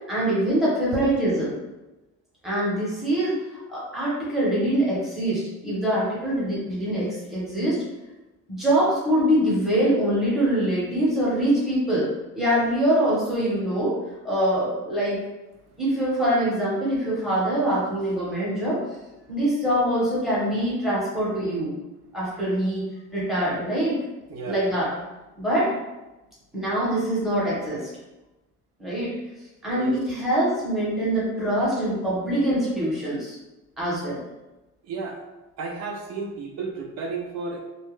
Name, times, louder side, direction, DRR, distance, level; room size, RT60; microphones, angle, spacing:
voice 1, 0.1-1.6 2.4-7.8 8.5-12.1 12.3-14.0 14.2-15.2 15.8-18.8 19.3-21.7 22.1-22.9 23.1-24.0 24.4-24.9 25.4-25.7 26.5-27.9 28.8-29.1 29.6-33.3 33.8-34.2, right 1 dB, ahead, -8 dB, 0.8 m, -24 dB
voice 2, 24.3-24.7 29.8-29.9 34.8-35.2 35.6-37.6, right 4 dB, 55° right, 1 dB, 0.4 m, -33 dB
2.3 x 2.2 x 3.0 m, 1.0 s
cardioid pair, 170°, 32 cm